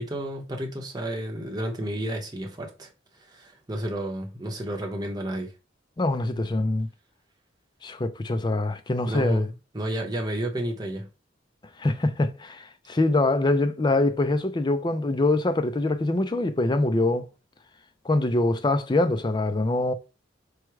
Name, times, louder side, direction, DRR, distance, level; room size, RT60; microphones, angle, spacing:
voice 1, 0.0-2.9 3.3-5.5 9.1-9.5 9.7-11.1, right 1 dB, 20° right, 0.8 m, -31 dB
voice 2, 6.0-6.9 7.8-9.5 11.8-17.3 18.0-19.9, left 2 dB, 25° left, 0.4 m, -24 dB
4.7 x 2.2 x 4.7 m
head